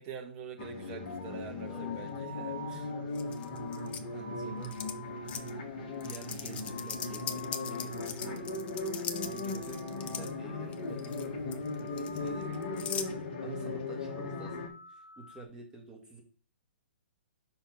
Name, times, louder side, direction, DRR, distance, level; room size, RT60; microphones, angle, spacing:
voice 1, 0.0-2.9 13.4-13.8, right 6 dB, 30° right, 2 dB, 1.3 m, -45 dB
sound 1, 0.6-14.7, left 3 dB, 40° left, 1.8 m, -38 dB
sound 2, 1.1-8.0 8.3-8.8 9.1-10.5 10.8-11.3 11.6-13.0 13.4-13.7 14.1-15.4, left 1 dB, 65° left, 1.9 m, -49 dB
voice 2, 1.7-2.0 2.7-2.9 4.1-4.7 6.0-8.6 9.2-12.7 13.0-16.2, right 2 dB, 10° right, 1 dB, 2.1 m, -49 dB
sound 3, 3.1-4.0 4.6-4.9 5.3-5.5 6.0-10.3 10.7-11.3 11.5-13.1, left 8 dB, 20° left, 0.6 m, -40 dB
5.7 x 4.4 x 5.5 m, 0.43 s
figure-of-eight pair, 120°, 6 cm